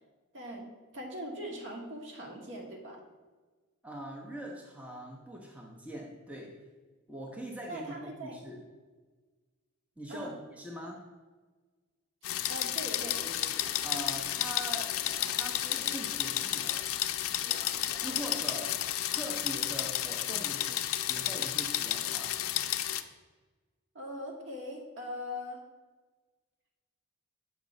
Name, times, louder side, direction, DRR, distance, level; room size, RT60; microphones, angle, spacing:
voice 1, 0.3-0.7 0.9-3.0 7.7-8.4 10.1-10.3 12.5-13.2 18.3-18.4 19.1-19.2 23.9-25.6, equal, 60° right, 0 dB, 1.1 m, -41 dB
voice 2, 3.8-6.6 7.1-8.6 10.0-11.0 13.8-14.9 15.3-16.8 18.0-18.7 19.1-22.4, right 1 dB, 5° right, -2 dB, 0.5 m, -42 dB
sound 1, 12.2-23.0, left 12 dB, 80° left, 0.3 m, -32 dB
sound 2, 13.1-18.2, left 2 dB, 40° left, 0.8 m, -51 dB
7.1 x 2.9 x 5.2 m, 1.3 s
head